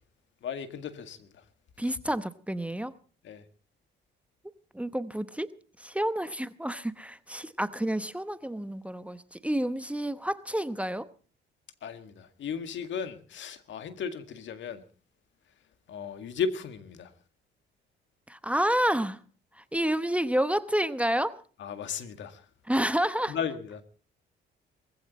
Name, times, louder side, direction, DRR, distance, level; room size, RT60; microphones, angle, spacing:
voice 1, 0.4-1.3 3.2-3.4 11.8-14.8 15.9-17.1 21.6-22.4 23.3-23.8, left 6 dB, 70° left, 1.9 m, -35 dB
voice 2, 1.8-2.9 4.7-5.5 5.8-11.1 18.3-19.2 19.5-21.4 22.7-23.4, right 1 dB, 5° right, 0.9 m, -29 dB
20.0 x 15.5 x 4.2 m
cardioid pair, 90°, 20 cm